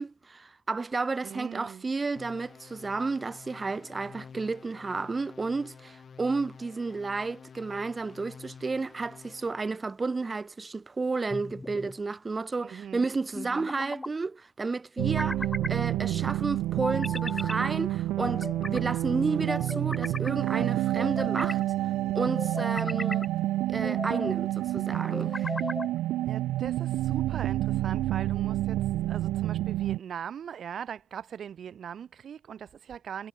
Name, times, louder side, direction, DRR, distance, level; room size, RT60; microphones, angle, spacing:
voice 1, 0.0-21.6 22.1-23.3 23.7-25.5, right 3 dB, 25° right, 0.9 m, -32 dB
voice 2, 1.2-1.9 12.6-13.7 16.0-16.4 25.3-25.7 26.3-28.8 29.1-33.3, right 8 dB, 60° right, 1.5 m, -41 dB
sound 1, 2.2-9.7, left 6 dB, 45° left, 1.2 m, -50 dB
sound 2, 11.3-12.0 13.3-14.1 15.0-15.8 16.8-17.6 18.2-18.8 19.5-20.3 21.0-21.6 22.4-23.3 23.8-24.4 25.1-25.9, left 2 dB, 15° left, 0.8 m, -37 dB
sound 3, 15.0-30.0, right 15 dB, 90° right, 0.5 m, -29 dB
cardioid pair, 90°, 0 cm